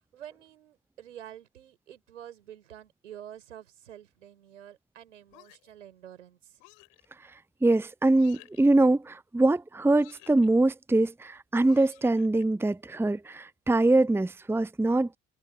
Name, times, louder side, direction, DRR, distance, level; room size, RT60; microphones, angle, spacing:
voice 1, 0.1-6.6, right 10 dB, 80° right, 5.7 m, -48 dB
sound 1, 5.3-5.8 6.6-7.1 8.1-8.7 9.9-10.5 11.6-12.4, left 40 dB or more, 65° left, 6.9 m, -55 dB
voice 2, 7.6-15.2, right 2 dB, 5° right, 0.9 m, -23 dB
figure-of-eight pair, 50°, 37 cm